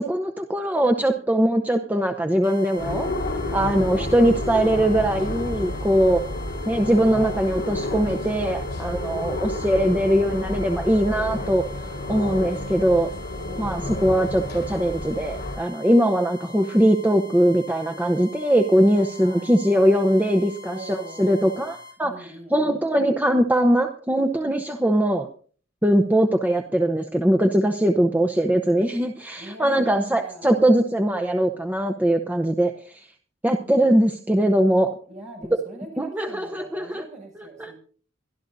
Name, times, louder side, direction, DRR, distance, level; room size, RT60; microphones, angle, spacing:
voice 1, 0.0-3.1 3.5-6.2 6.7-11.6 12.1-13.1 13.6-25.3 25.8-33.1 33.4-34.9 36.0-37.0 37.4-37.7, right 1 dB, 10° right, 4 dB, 0.7 m, -21 dB
sound 1, 2.4-22.0, left 3 dB, 25° left, 4.6 m, -44 dB
sound 2, 2.8-15.6, left 1 dB, 50° left, 4.3 m, -30 dB
voice 2, 3.4-4.0 8.8-10.4 13.4-14.4 18.9-19.5 20.6-21.8 22.0-23.0 29.4-30.7 35.1-37.7, right 1 dB, 40° right, 0 dB, 6.7 m, -42 dB
23.5 x 12.5 x 2.7 m, 0.43 s
head